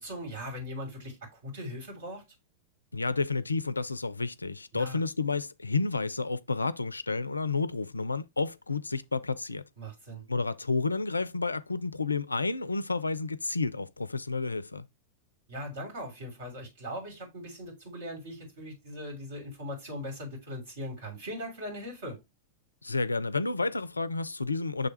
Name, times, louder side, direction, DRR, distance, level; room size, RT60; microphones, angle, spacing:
voice 1, 0.0-2.2 4.7-5.0 9.8-10.2 15.5-22.2, equal, 60° right, 3.0 m, -40 dB
voice 2, 2.9-9.6 10.3-14.9 22.8-24.9, left 3 dB, 80° left, 0.3 m, -30 dB
6.8 x 3.4 x 4.1 m
figure-of-eight pair, 90°, 0 cm